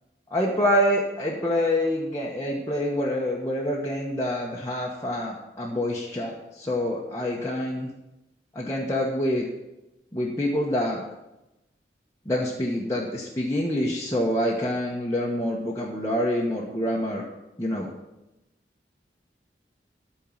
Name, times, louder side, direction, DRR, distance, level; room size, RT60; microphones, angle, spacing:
voice 1, 0.3-7.9 8.5-9.5 10.1-11.0 12.2-17.2 17.6-17.9, left 1 dB, 15° left, -5 dB, 1.1 m, -26 dB
13.0 x 4.6 x 7.4 m, 0.96 s
head